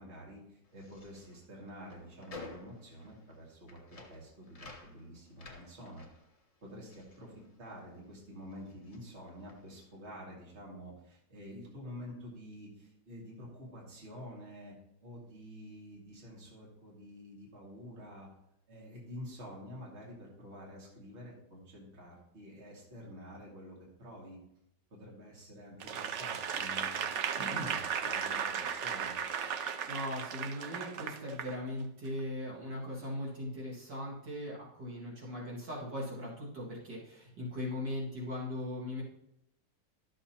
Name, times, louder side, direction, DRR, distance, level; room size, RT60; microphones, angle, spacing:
voice 1, 0.0-3.8 4.1-6.0 6.6-18.3 18.7-24.4 24.9-29.2, equal, 40° right, -4 dB, 2.3 m, -48 dB
sound 1, 0.6-8.2 8.4-9.9, left 3 dB, 35° left, 0.6 m, -53 dB
Applause / Crowd, 25.8-31.5 32.1-32.2, right 7 dB, 85° right, 0.6 m, -36 dB
voice 2, 29.9-39.0, left 1 dB, 70° right, -5 dB, 2.7 m, -39 dB
12.5 x 6.9 x 2.9 m, 0.80 s
omnidirectional pair, 1.9 m